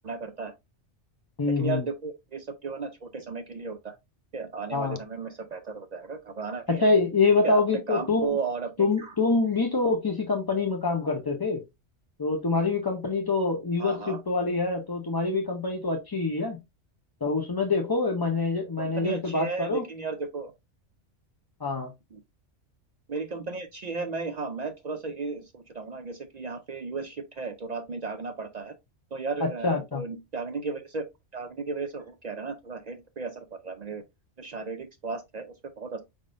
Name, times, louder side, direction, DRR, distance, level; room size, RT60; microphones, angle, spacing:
voice 1, 0.0-0.5 1.6-3.9 4.3-6.8 7.4-8.7 9.0-9.1 13.8-14.2 18.8-20.5 22.1-22.2 23.1-28.7 29.1-31.0 31.3-34.0 34.4-36.0, right 4 dB, 55° right, 0.4 m, -34 dB
voice 2, 1.4-1.8 4.7-5.0 6.7-8.4 8.8-11.6 12.2-16.6 17.2-19.8 21.6-21.9 29.4-30.0, left 3 dB, 25° left, 0.5 m, -25 dB
5.2 x 3.5 x 2.5 m
omnidirectional pair, 1.2 m